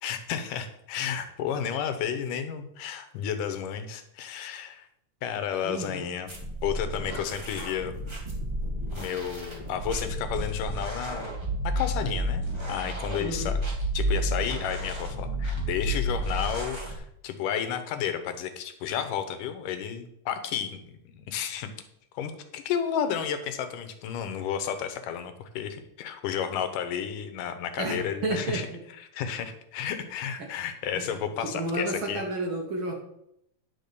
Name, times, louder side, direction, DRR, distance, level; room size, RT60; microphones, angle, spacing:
voice 1, 0.0-4.9 5.2-6.3 6.6-7.9 8.9-11.3 11.6-13.5 13.9-21.7 22.1-28.7 29.0-32.2, left 8 dB, 85° left, 9 dB, 2.6 m, -32 dB
voice 2, 5.6-6.1 13.2-13.5 27.8-28.6 30.9-32.9, right 2 dB, 50° right, 0 dB, 1.7 m, -31 dB
sound 1, 6.3-16.9, equal, 15° right, 1.1 m, -31 dB
11.0 x 4.8 x 6.8 m, 0.76 s
omnidirectional pair, 3.7 m